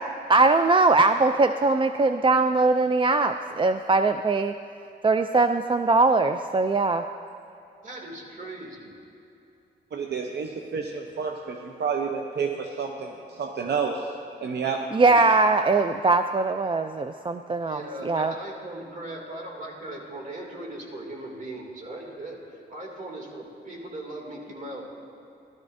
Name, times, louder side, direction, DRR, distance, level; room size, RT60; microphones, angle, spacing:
voice 1, 0.3-4.5 5.0-7.0 14.9-18.3, right 3 dB, 30° right, 8 dB, 0.4 m, -21 dB
voice 2, 7.8-8.9 17.6-24.8, right 1 dB, 45° right, -1 dB, 2.6 m, -38 dB
voice 3, 9.9-14.1 14.4-15.2, right 5 dB, 70° right, 2 dB, 0.8 m, -30 dB
17.0 x 12.5 x 2.7 m, 2.9 s
cardioid pair, 75°, 18 cm